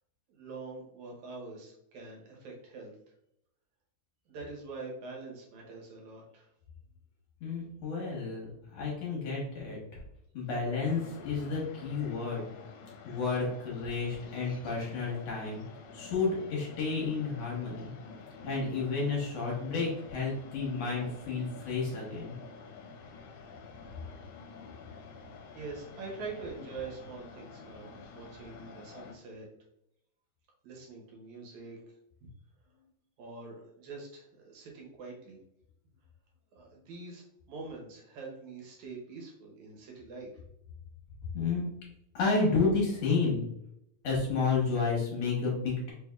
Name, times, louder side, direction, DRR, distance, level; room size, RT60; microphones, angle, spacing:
voice 1, 0.3-3.0 4.3-6.5 25.5-29.5 30.6-31.8 32.2-32.3 33.2-35.4 36.5-40.4, right 3 dB, 75° right, -1 dB, 2.3 m, -44 dB
voice 2, 7.4-10.0 10.3-12.4 13.0-15.6 15.9-17.9 18.4-22.3 41.3-41.6 42.1-43.4 44.0-45.9, left 4 dB, 65° left, -3 dB, 2.1 m, -31 dB
sound 1, 10.8-29.2, left 4 dB, 85° left, 2.0 m, -49 dB
4.9 x 3.4 x 2.3 m, 0.79 s
omnidirectional pair, 3.5 m